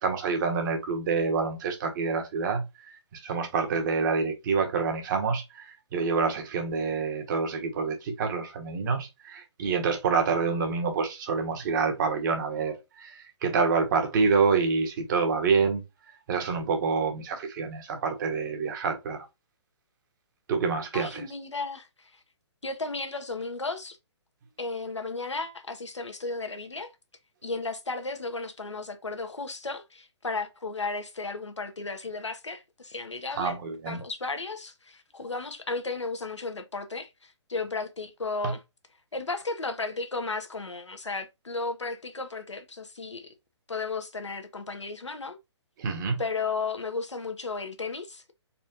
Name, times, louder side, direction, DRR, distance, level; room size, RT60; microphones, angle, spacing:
voice 1, 0.0-2.6 3.2-15.8 16.3-19.2 20.5-21.2 33.4-34.0 38.4-38.5 45.8-46.2, right 5 dB, 45° right, 1.4 m, -27 dB
voice 2, 20.9-22.2 22.6-24.0 24.6-26.9 27.4-33.6 33.8-38.6 39.1-43.3 43.7-45.4 46.2-48.3, left 3 dB, 90° left, 1.0 m, -34 dB
4.2 x 3.3 x 2.8 m
figure-of-eight pair, 130°, 15 cm